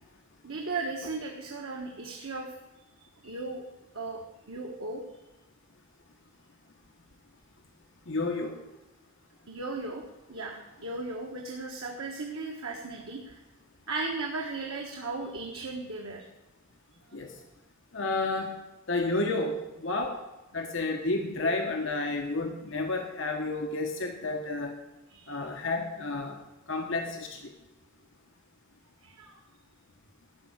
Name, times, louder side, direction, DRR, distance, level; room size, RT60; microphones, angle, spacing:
voice 1, 0.4-2.5 3.2-3.6 3.9-5.0 9.5-13.4 13.9-16.2 25.1-25.4 29.0-29.4, right 3 dB, 90° right, 0 dB, 1.5 m, -36 dB
voice 2, 8.1-8.6 17.1-17.3 17.9-18.5 18.9-20.2 20.5-24.7 25.3-26.4 26.7-27.5, left 2 dB, 60° left, 3 dB, 1.2 m, -31 dB
13.5 x 5.6 x 8.8 m, 1.0 s
head